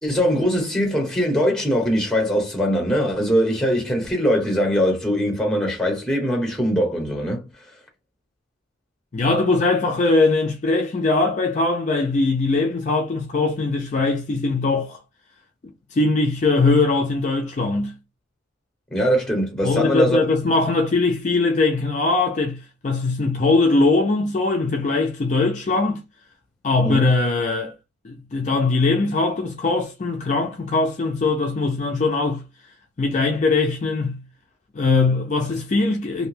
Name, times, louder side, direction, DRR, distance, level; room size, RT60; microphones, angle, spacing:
voice 1, 0.0-7.5 18.9-20.2 26.8-27.1, equal, 5° left, 1.0 m, -21 dB
voice 2, 9.1-15.0 15.9-17.9 19.6-26.0 26.6-27.7 28.0-32.4 33.0-34.2 34.7-36.3, left 3 dB, 40° left, 0.4 m, -21 dB
2.6 x 2.2 x 3.2 m
head